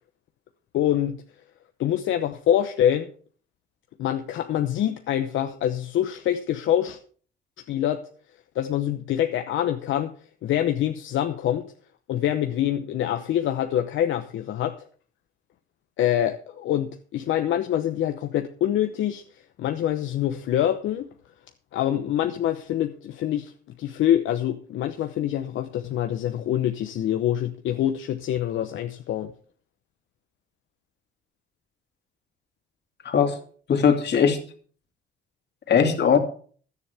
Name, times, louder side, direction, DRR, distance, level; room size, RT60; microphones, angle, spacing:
voice 1, 0.7-1.2 1.8-3.1 4.0-7.0 7.7-8.0 8.5-10.1 10.4-11.7 12.1-14.9 16.0-19.2 19.6-21.1 21.7-23.5 23.8-29.3, left 11 dB, 80° left, 7 dB, 0.9 m, -25 dB
voice 2, 33.7-34.4 35.7-36.2, left 7 dB, 60° left, 5 dB, 2.7 m, -19 dB
16.0 x 11.0 x 3.5 m, 0.44 s
cardioid pair, 90°, 20 cm